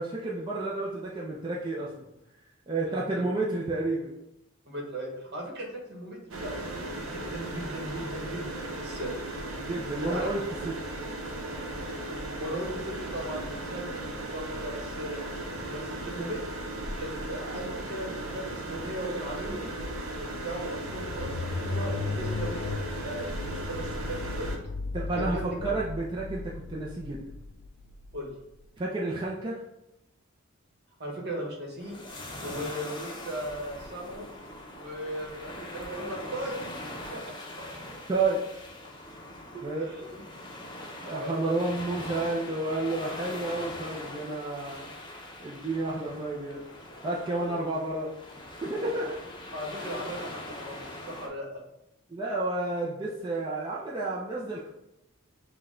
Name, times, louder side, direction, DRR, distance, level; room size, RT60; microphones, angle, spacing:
voice 1, 0.0-2.1 2.7-4.1 9.6-10.8 24.9-27.2 28.8-29.6 38.1-38.5 39.6-39.9 41.0-44.9 45.4-46.6 47.0-49.2 52.1-54.7, right 2 dB, 20° right, -5 dB, 0.5 m, -31 dB
voice 2, 2.8-3.2 4.7-9.1 10.0-10.3 12.4-15.2 15.7-16.4 17.0-19.7 20.2-22.7 23.0-24.4 25.1-25.7 28.1-28.3 31.0-32.0 32.4-34.3 34.7-36.5 37.1-37.2 37.6-37.7 39.5-40.1 41.0-41.6 47.3-47.6 49.5-51.6, right 1 dB, 55° right, 0 dB, 1.2 m, -37 dB
sound 1, 6.3-24.6, right 1 dB, 85° right, 0.8 m, -36 dB
sound 2, 20.3-28.6, left 3 dB, 50° left, 0.3 m, -36 dB
sound 3, 31.8-51.3, left 1 dB, 20° left, 0.7 m, -42 dB
6.1 x 2.3 x 3.7 m, 0.89 s
head